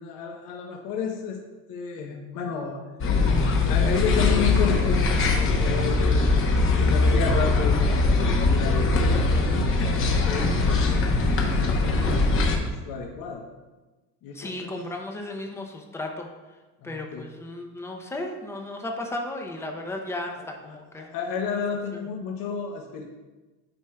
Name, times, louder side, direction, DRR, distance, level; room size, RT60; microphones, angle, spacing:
voice 1, 0.0-1.4 1.7-2.8 3.5-6.3 6.7-11.1 11.5-13.5 14.2-14.7 16.8-17.3 20.4-23.0, left 6 dB, 60° left, 1 dB, 0.8 m, -32 dB
sound 1, 3.0-12.6, left 3 dB, 35° left, 0.9 m, -21 dB
voice 2, 14.3-16.3 16.8-21.1 21.9-22.0, left 1 dB, 5° left, 2 dB, 0.5 m, -35 dB
8.7 x 4.9 x 2.2 m, 1.2 s
cardioid pair, 140°, 38 cm